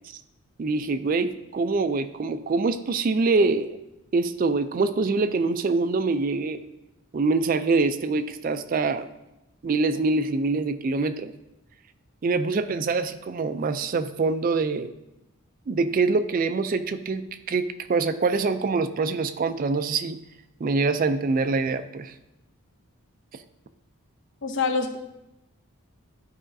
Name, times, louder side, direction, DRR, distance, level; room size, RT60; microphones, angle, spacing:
voice 1, 0.6-3.8 4.1-6.6 7.1-9.1 9.6-11.3 12.2-14.9 15.7-20.2 20.6-22.1, right 3 dB, 40° right, 10 dB, 0.3 m, -24 dB
voice 2, 24.4-25.0, left 4 dB, 55° left, 5 dB, 0.7 m, -25 dB
12.0 x 4.9 x 2.6 m, 0.93 s
head